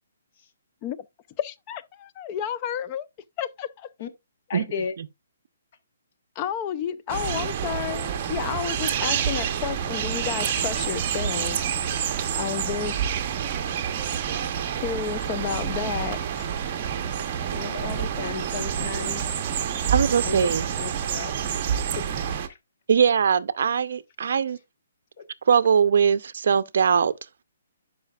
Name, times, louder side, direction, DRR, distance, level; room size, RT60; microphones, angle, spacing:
voice 1, 1.4-3.1 3.4-3.9 6.4-11.6 12.4-13.1 14.8-16.5, left 9 dB, 25° left, 0.5 m, -31 dB
voice 2, 4.5-4.9 17.5-19.2 20.2-21.6 22.0-22.1 22.5-22.6 25.2-25.3, left 6 dB, 40° left, 1.1 m, -34 dB
sound 1, 7.1-22.5, right 8 dB, 35° right, 0.9 m, -28 dB
voice 3, 19.9-20.6 22.9-24.6 25.5-27.1, right 7 dB, 65° right, 0.5 m, -21 dB
11.5 x 4.9 x 2.3 m
hypercardioid pair, 160°, 0 cm